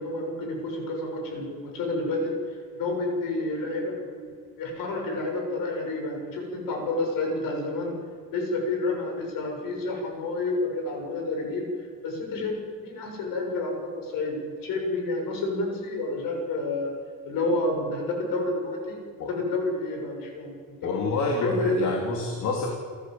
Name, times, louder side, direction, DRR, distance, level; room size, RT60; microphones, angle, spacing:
voice 1, 0.0-4.2 4.6-8.0 8.3-16.9 17.2-20.9 21.4-21.9 22.2-22.3, left 2 dB, 75° left, 2 dB, 7.1 m, -29 dB
voice 2, 20.8-22.7, left 3 dB, 55° left, 0 dB, 3.4 m, -27 dB
30.0 x 14.5 x 8.0 m, 2.2 s
cardioid pair, 175°, 34 cm